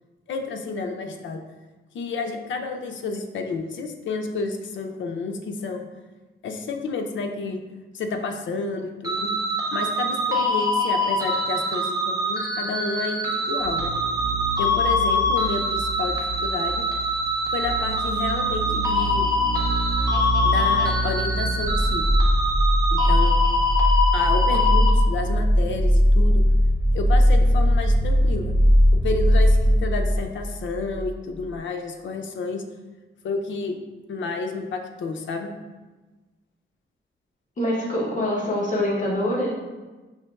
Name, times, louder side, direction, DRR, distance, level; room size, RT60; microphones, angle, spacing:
voice 1, 0.3-1.4 1.9-5.9 6.4-7.6 7.9-9.3 9.7-13.9 14.6-16.8 17.5-19.3 20.4-22.0 22.9-23.4 24.1-26.4 26.9-28.5 28.9-32.6 33.2-33.7 34.1-35.6, left 4 dB, 75° left, 4 dB, 0.4 m, -30 dB
sound 1, 9.0-24.9, left 1 dB, 20° right, 0.5 m, -24 dB
sound 2, 13.6-31.1 31.4-31.5, equal, 75° right, 0.9 m, -21 dB
voice 2, 37.6-39.5, left 1 dB, 40° left, -5 dB, 0.9 m, -24 dB
5.6 x 2.9 x 2.3 m, 1.2 s
wide cardioid pair, 165°, 20 cm